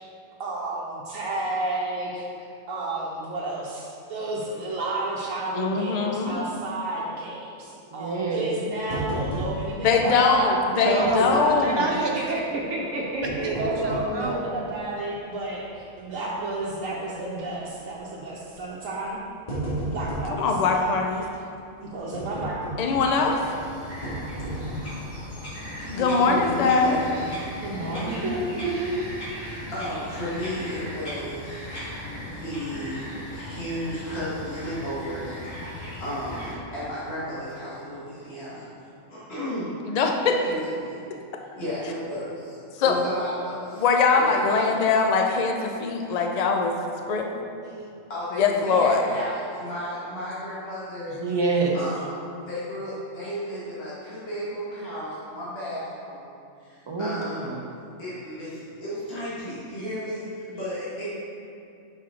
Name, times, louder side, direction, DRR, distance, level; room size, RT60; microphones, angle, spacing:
voice 1, 0.4-2.3 2.7-19.2 19.9-20.8 21.8-22.6 27.6-28.4, right 2 dB, 80° right, -6 dB, 1.1 m, -31 dB
voice 2, 5.5-6.4 9.8-11.9 20.4-21.2 22.8-23.4 25.9-27.0 39.9-40.4 42.8-42.9 43.8-46.7 47.1-47.3 48.4-49.0, left 4 dB, 90° left, 3 dB, 0.3 m, -22 dB
voice 3, 7.9-8.5 10.8-12.1 13.4-13.5 13.8-14.4 27.8-29.1 51.2-51.8 56.9-57.6, right 3 dB, 30° right, -2 dB, 0.5 m, -27 dB
sound 1, 8.9-9.9 10.2-10.3 11.0-11.6 13.0-14.2 14.8-14.9 15.5-15.8 16.1-16.2 17.3-17.6 18.5-18.7 19.1-20.4 22.1-23.3 24.0-25.0 25.5-25.7 26.0-26.1, right 1 dB, 30° left, 1.6 m, -32 dB
Bird vocalization bird call bird song, 23.2-36.5, equal, 75° left, 2.1 m, -38 dB
voice 4, 25.8-27.3 29.7-31.6 32.3-38.7 39.1-39.7 40.4-41.0 41.4-43.8 44.1-44.9 48.1-51.2 51.7-52.2 52.5-57.5 58.0-61.1, equal, 50° left, -10 dB, 1.9 m, -34 dB
5.9 x 5.4 x 3.7 m, 2.5 s
omnidirectional pair, 1.4 m